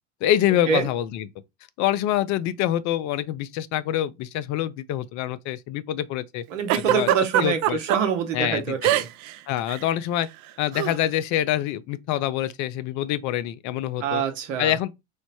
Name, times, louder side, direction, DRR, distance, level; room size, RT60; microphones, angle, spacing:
voice 1, 0.2-1.3 1.8-6.4 6.9-7.1 7.4-7.8 8.3-8.9 9.5-10.3 10.6-14.2 14.6-14.9, left 12 dB, 50° left, 0.5 m, -25 dB
voice 2, 6.5-9.1 14.0-14.7, right 7 dB, 85° right, 0.9 m, -25 dB
Giggle, 6.7-8.0 8.8-9.3 9.6-9.8 10.7-11.0, right 13 dB, 50° right, 0.4 m, -22 dB
3.2 x 2.0 x 4.1 m
hypercardioid pair, 80°, 37 cm